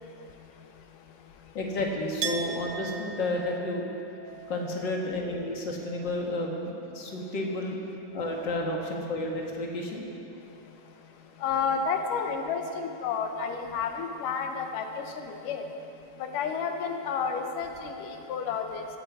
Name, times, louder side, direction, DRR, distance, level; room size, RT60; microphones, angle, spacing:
voice 1, 1.5-3.9 4.5-7.8 8.1-10.1, left 1 dB, 40° left, 0 dB, 1.9 m, -31 dB
Chink clink, 2.2-7.7 8.0-8.9, right 6 dB, 65° right, 1.5 m, -41 dB
voice 2, 11.4-15.6 16.2-18.9, left 6 dB, 80° left, 5 dB, 2.7 m, -31 dB
16.5 x 14.5 x 4.9 m, 2.8 s
omnidirectional pair, 3.7 m